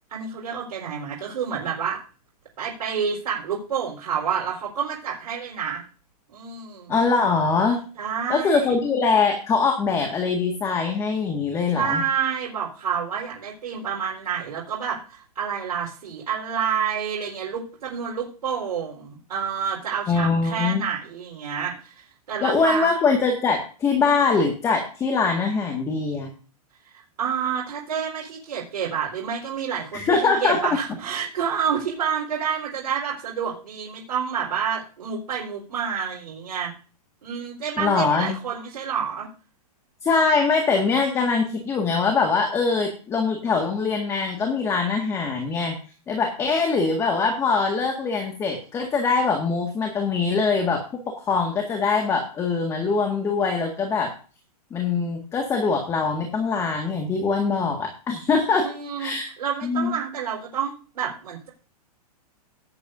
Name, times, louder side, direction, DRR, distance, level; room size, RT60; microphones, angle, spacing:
voice 1, 0.1-2.0 2.6-5.8 6.3-6.9 8.0-8.7 11.7-22.9 26.9-36.7 37.2-39.3 58.6-61.5, right 7 dB, 85° right, -4 dB, 4.2 m, -29 dB
voice 2, 6.9-7.8 8.3-12.0 20.1-20.8 22.4-26.3 29.9-30.6 37.8-38.4 40.0-45.7 46.1-54.1 54.7-58.7 59.0-59.3 59.6-59.9, left 4 dB, 15° left, 3 dB, 1.7 m, -23 dB
18.5 x 8.6 x 2.6 m, 0.37 s
hypercardioid pair, 160°, 20 cm